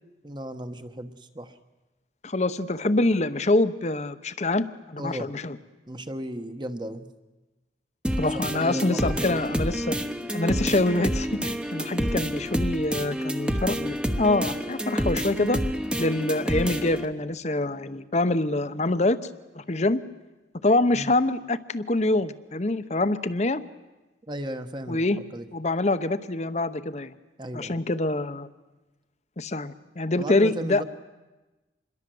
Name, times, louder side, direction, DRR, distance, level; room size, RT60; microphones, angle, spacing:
voice 1, 0.2-1.6 5.0-5.3 5.9-7.1 8.3-9.4 20.9-21.1 24.3-25.5 27.4-27.8 30.2-30.8, right 1 dB, 25° right, 8 dB, 1.2 m, -35 dB
voice 2, 2.2-5.6 8.2-10.0 10.3-15.6 16.0-19.2 19.5-20.0 20.6-23.6 24.9-25.2 25.5-27.1 27.5-28.5 29.4-30.8, left 2 dB, 40° left, 13 dB, 0.9 m, -25 dB
sound 1, 8.0-17.0, equal, 5° right, 1.0 m, -28 dB
27.0 x 21.5 x 7.8 m, 1.1 s
head